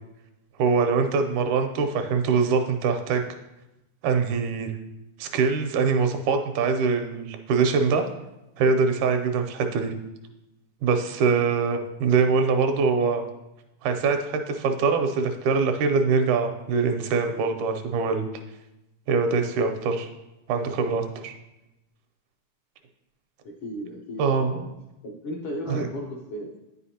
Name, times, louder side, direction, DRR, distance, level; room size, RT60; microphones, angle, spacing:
voice 1, 0.6-3.2 4.0-4.7 5.2-8.1 8.6-9.9 10.8-13.2 13.8-18.3 19.1-20.1 20.5-21.3 24.2-24.6 25.7-25.9, right 5 dB, 90° right, 6 dB, 2.2 m, -23 dB
voice 2, 23.4-24.7 25.0-26.6, equal, 75° left, -2 dB, 1.2 m, -35 dB
9.3 x 5.7 x 2.8 m, 0.95 s
omnidirectional pair, 3.4 m